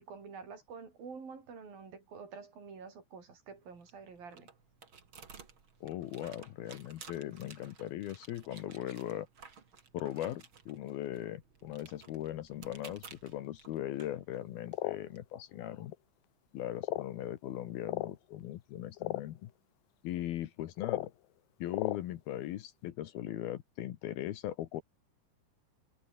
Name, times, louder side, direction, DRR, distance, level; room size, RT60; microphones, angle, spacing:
voice 1, 0.0-4.5, right 5 dB, 50° right, 8.1 m, -48 dB
sound 1, 3.5-15.2, right 6 dB, 35° right, 2.6 m, -56 dB
voice 2, 5.8-9.3 9.9-15.9 16.5-19.5 20.0-21.1 21.6-24.8, left 13 dB, 70° left, 2.7 m, -39 dB
sound 2, 14.7-15.0 15.9-16.0 16.8-17.1 17.8-18.1 19.0-19.2 20.8-21.1 21.7-22.0, left 17 dB, 90° left, 2.0 m, -35 dB
omnidirectional pair, 5.1 m